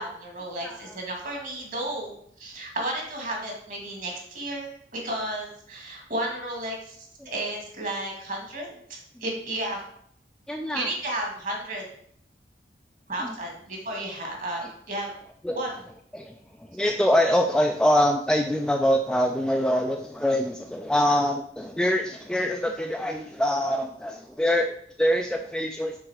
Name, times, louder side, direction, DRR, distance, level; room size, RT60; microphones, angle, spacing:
voice 1, 0.0-2.1 2.4-7.0 7.2-8.8 9.2-9.8 10.7-11.8 13.1-15.1 15.5-15.7, right 1 dB, 45° right, 0 dB, 1.7 m, -32 dB
voice 2, 0.6-0.9 7.2-7.3 10.5-10.9 13.2-13.3 15.4-15.6 16.1-16.3 16.7-26.0, equal, 5° left, 3 dB, 0.3 m, -24 dB
6.1 x 3.9 x 4.6 m, 0.66 s
head